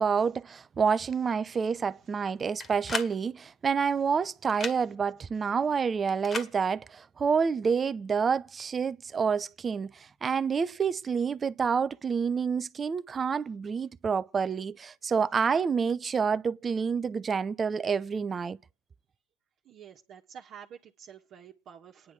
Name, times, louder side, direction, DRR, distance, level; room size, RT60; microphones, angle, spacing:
voice 1, 0.0-18.6, right 6 dB, 25° right, 0.7 m, -28 dB
sound 1, 2.6-3.1 4.5-4.8 6.2-6.5, left 4 dB, 25° left, 1.9 m, -34 dB
voice 2, 19.7-22.1, right 8 dB, 45° right, 1.6 m, -49 dB
29.5 x 10.5 x 4.7 m
supercardioid pair, 125°, 0 cm